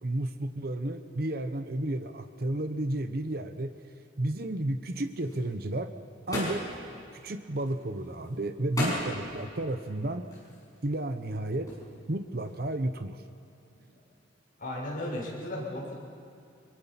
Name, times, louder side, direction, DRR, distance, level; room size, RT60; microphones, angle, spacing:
voice 1, 0.0-3.7 4.2-5.9 6.3-6.7 7.1-10.3 10.8-11.7 12.1-13.2, right 1 dB, 50° right, 9 dB, 0.9 m, -32 dB
sound 1, 4.9-12.8, left 1 dB, 15° left, 6.9 m, -39 dB
voice 2, 14.6-16.0, left 1 dB, 45° left, -4 dB, 6.6 m, -35 dB
24.0 x 23.0 x 5.8 m, 2.6 s
head